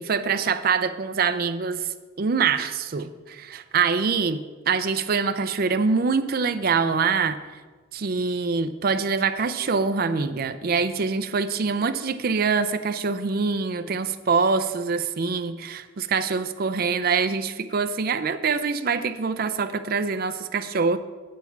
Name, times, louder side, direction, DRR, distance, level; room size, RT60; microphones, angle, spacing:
voice 1, 0.0-1.8 2.2-7.4 7.9-21.0, right 5 dB, 50° right, 10 dB, 0.5 m, -24 dB
9.2 x 7.1 x 4.5 m, 1.3 s
head